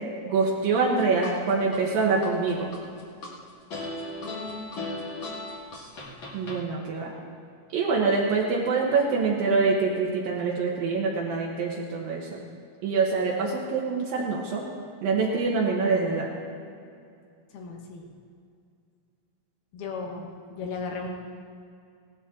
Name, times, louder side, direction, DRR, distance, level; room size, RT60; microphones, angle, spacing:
voice 1, 0.3-2.7 6.3-7.1 7.7-12.4 12.8-14.6 15.0-16.3, right 4 dB, 70° right, -3 dB, 2.8 m, -25 dB
sound 1, 0.8-1.8 2.2-3.3 3.7-6.6, left 2 dB, 45° left, 1.8 m, -36 dB
voice 2, 4.2-4.8 17.5-18.1 19.7-21.1, left 4 dB, 80° left, 1 dB, 3.4 m, -36 dB
17.5 x 12.0 x 3.8 m, 2.4 s
omnidirectional pair, 4.4 m